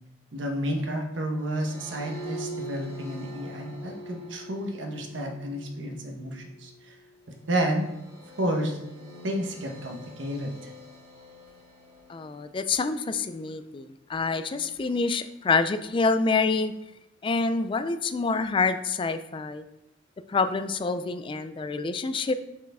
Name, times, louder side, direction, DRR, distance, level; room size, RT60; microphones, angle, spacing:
voice 1, 0.3-6.9 7.5-7.9 8.4-8.8 9.2-10.7, right 1 dB, 85° right, 2 dB, 1.1 m, -31 dB
sound 1, 1.4-12.8, equal, 35° right, 1.9 m, -44 dB
voice 2, 12.1-16.7 17.2-19.6 20.3-22.3, left 4 dB, 25° left, 11 dB, 0.3 m, -27 dB
7.2 x 4.6 x 3.6 m, 0.88 s
head